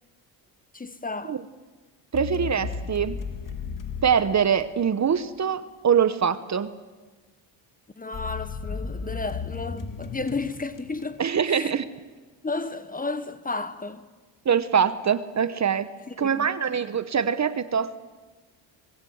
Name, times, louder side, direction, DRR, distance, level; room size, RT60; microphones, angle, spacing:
voice 1, 0.7-1.4 8.0-11.7 12.4-14.1 16.1-16.5, left 3 dB, 15° left, 1.3 m, -33 dB
sound 1, 2.1-5.1 8.1-11.6, left 5 dB, 40° left, 2.3 m, -35 dB
voice 2, 2.1-3.2 4.0-6.7 11.2-11.9 14.4-15.9 16.2-18.0, right 7 dB, 35° right, 1.2 m, -23 dB
26.0 x 20.5 x 8.1 m
supercardioid pair, 90°, 50 cm